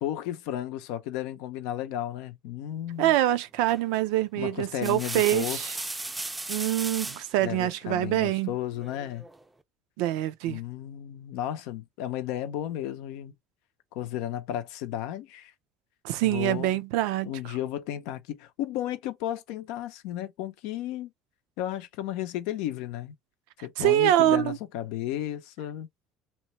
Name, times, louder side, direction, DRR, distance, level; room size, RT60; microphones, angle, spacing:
voice 1, 0.0-3.2 4.4-5.6 7.4-9.3 10.5-13.3 13.9-15.5 16.2-16.8 17.2-21.1 21.6-23.1 23.6-25.9, left 12 dB, 80° left, 0.5 m, -33 dB
voice 2, 3.0-5.8 6.5-8.5 10.0-10.6 16.0-17.3 23.8-24.6, right 14 dB, 80° right, 0.4 m, -25 dB
sound 1, 3.7-4.0 4.6-7.3 8.8-9.4, right 2 dB, 15° right, 0.4 m, -36 dB
2.9 x 2.2 x 2.7 m
supercardioid pair, 85°, 0 cm